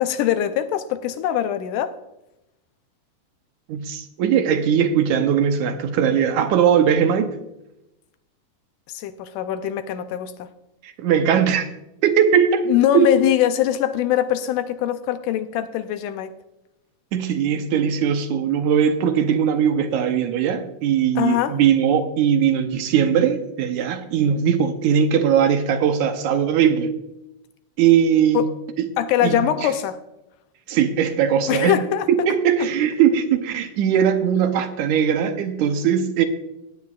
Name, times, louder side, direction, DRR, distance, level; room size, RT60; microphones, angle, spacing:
voice 1, 0.0-1.9 8.9-10.5 12.7-16.3 21.2-21.6 28.3-28.5 29.0-30.0 31.5-32.1 32.6-32.7, left 11 dB, 85° left, 2.1 m, -22 dB
voice 2, 3.7-7.4 10.8-11.7 12.0-13.1 17.1-26.9 27.8-28.5 28.8-28.9 29.2-29.7 30.7-31.8 32.1-36.3, right 8 dB, 75° right, 2.0 m, -20 dB
17.5 x 9.3 x 2.4 m
omnidirectional pair, 3.8 m